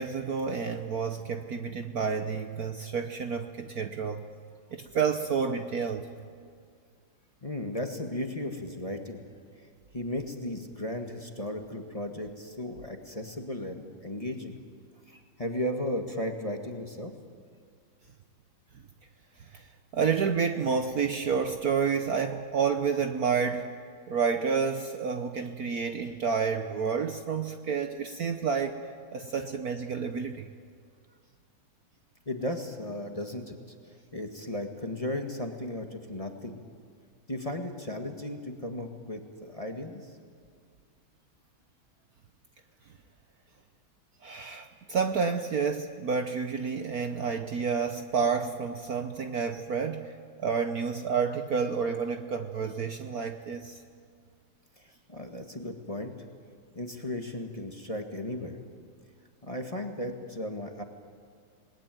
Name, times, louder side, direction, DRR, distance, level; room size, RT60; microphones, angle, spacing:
voice 1, 0.0-4.2 4.7-6.1 19.4-19.7 19.9-23.7 24.1-30.5 44.2-50.1 50.4-53.8, right 6 dB, 55° right, 7 dB, 1.2 m, -29 dB
voice 2, 7.4-9.2 9.9-14.6 15.1-17.1 32.3-33.6 33.9-36.6 37.3-40.1 54.8-56.1 56.7-58.6 59.4-60.8, left 1 dB, 20° left, 4 dB, 1.5 m, -35 dB
28.0 x 20.0 x 9.2 m, 2.1 s
omnidirectional pair, 2.2 m